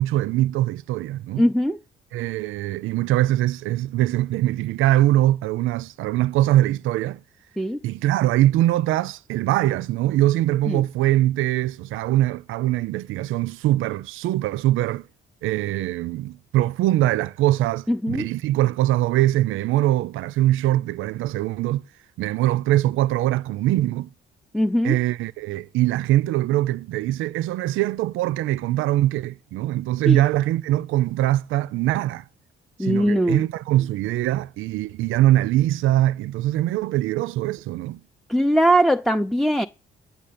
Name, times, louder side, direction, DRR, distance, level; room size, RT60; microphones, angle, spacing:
voice 1, 0.0-1.4 2.1-7.2 7.8-15.1 15.4-21.8 22.2-24.1 24.8-32.2 32.8-38.0, right 15 dB, 85° right, 0.5 m, -22 dB
voice 2, 1.4-1.8 7.6-7.8 10.7-10.8 17.9-18.3 24.5-25.0 30.1-30.2 32.8-33.4 38.3-39.7, equal, ahead, 0.6 m, -20 dB
9.3 x 6.5 x 8.5 m
cardioid pair, 90°, 20 cm